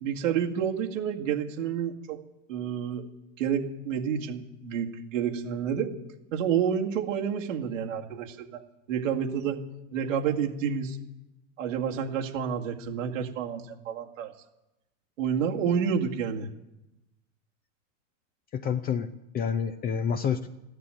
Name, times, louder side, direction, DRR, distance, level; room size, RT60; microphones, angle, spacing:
voice 1, 0.0-2.2 2.5-3.1 3.4-5.9 6.3-8.6 8.9-9.6 9.9-11.0 11.6-14.3 15.2-16.5, right 7 dB, 90° right, 2 dB, 2.1 m, -29 dB
voice 2, 18.5-20.5, left 7 dB, 25° left, 9 dB, 0.6 m, -29 dB
14.0 x 11.0 x 9.1 m, 0.95 s
supercardioid pair, 140°, 37 cm